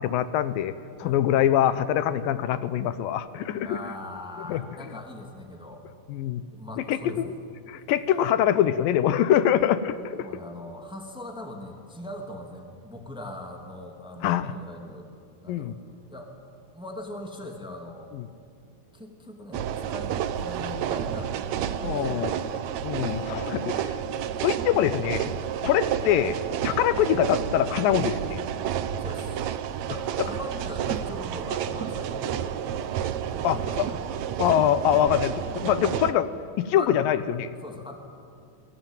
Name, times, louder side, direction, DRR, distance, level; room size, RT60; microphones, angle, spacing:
voice 1, 0.0-3.8 4.5-4.6 6.1-6.4 6.9-7.3 7.7-10.3 14.2-14.6 15.5-15.8 18.1-18.3 21.8-22.3 22.8-23.9 24.4-25.3 25.6-26.4 26.6-28.4 30.2-30.3 33.4-33.9 34.4-36.3 36.6-37.5, left 10 dB, 85° left, 13 dB, 2.7 m, -24 dB
voice 2, 3.6-5.8 6.5-7.3 10.2-15.1 15.4-15.8 16.1-16.4 16.7-18.1 18.9-22.4 29.0-29.5 29.9-34.2 36.7-36.9 37.6-38.0, left 1 dB, ahead, 2 dB, 2.5 m, -41 dB
sound 1, 19.5-36.1, right 9 dB, 70° right, 1.9 m, -30 dB
29.0 x 22.0 x 9.2 m, 2.3 s
omnidirectional pair, 4.0 m